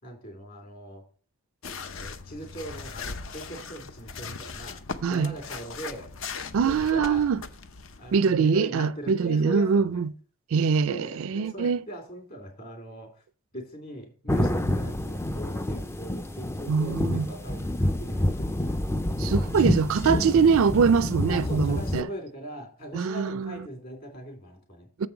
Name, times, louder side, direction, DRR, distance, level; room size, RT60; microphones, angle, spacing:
voice 1, 0.0-1.0 1.9-6.1 6.6-7.3 8.0-10.0 10.8-13.2 13.5-18.8 21.3-24.9, right 1 dB, 40° left, 3.2 m, -40 dB
sound 1, 1.6-8.2, left 5 dB, 60° left, 0.7 m, -39 dB
voice 2, 5.0-5.3 6.5-7.4 8.1-10.1 10.5-11.8 16.7-17.3 19.2-22.1 22.9-23.5 25.0-25.1, right 5 dB, 70° right, 0.4 m, -23 dB
sound 2, 14.3-22.0, left 1 dB, 10° left, 0.4 m, -28 dB
7.2 x 5.3 x 5.9 m
head